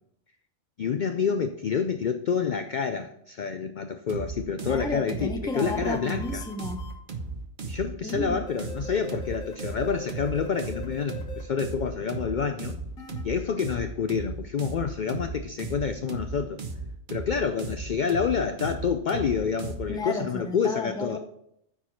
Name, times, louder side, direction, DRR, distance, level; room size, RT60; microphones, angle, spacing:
voice 1, 0.8-6.4 7.6-12.8 13.2-16.6 17.1-21.2, left 6 dB, 65° left, 9 dB, 0.4 m, -28 dB
sound 1, 4.1-20.0, right 3 dB, 40° right, 0.9 m, -36 dB
voice 2, 4.6-6.8 8.0-8.4 19.9-21.2, left 2 dB, 5° left, 6 dB, 0.5 m, -33 dB
sound 2, 5.5-6.9 8.5-11.4 13.0-13.2, left 2 dB, 85° left, 1.9 m, -42 dB
9.4 x 4.7 x 5.7 m, 0.75 s
omnidirectional pair, 1.4 m